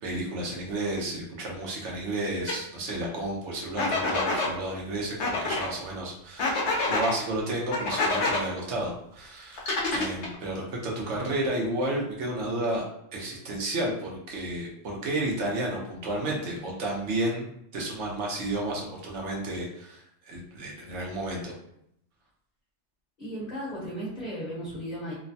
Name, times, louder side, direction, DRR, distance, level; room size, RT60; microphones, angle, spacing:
voice 1, 0.0-9.6 9.9-12.8 13.1-17.5 17.7-21.5, right 1 dB, 70° right, -2 dB, 1.1 m, -32 dB
sound 1, 2.5-2.6 3.8-4.5 5.2-5.7 6.4-7.1 7.7-8.4 9.6-10.4, left 2 dB, 70° left, 0.9 m, -27 dB
voice 2, 23.2-25.1, equal, 35° left, -7 dB, 1.0 m, -35 dB
3.0 x 2.2 x 2.6 m, 0.74 s
omnidirectional pair, 1.3 m